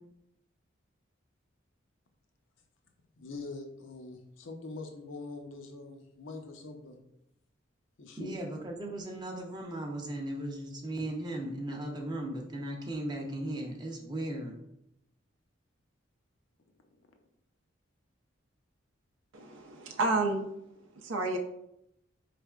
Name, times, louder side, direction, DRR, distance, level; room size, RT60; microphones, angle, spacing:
voice 1, 3.2-7.0 8.0-8.4, left 3 dB, 75° left, 4 dB, 0.6 m, -43 dB
voice 2, 8.2-14.5, right 1 dB, 20° right, 1 dB, 0.5 m, -37 dB
voice 3, 19.3-20.4 20.9-21.4, right 2 dB, 80° right, 2 dB, 0.4 m, -30 dB
4.5 x 3.2 x 2.3 m, 0.80 s
head